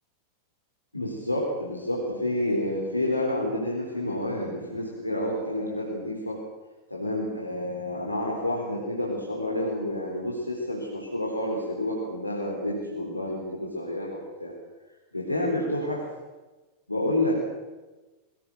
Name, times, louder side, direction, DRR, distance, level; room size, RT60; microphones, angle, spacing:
voice 1, 0.9-6.4 6.9-14.5 15.1-16.0 16.9-17.4, left 1 dB, 85° left, -3 dB, 4.0 m, -29 dB
22.0 x 17.0 x 7.8 m, 1.2 s
figure-of-eight pair, 90°, 0 cm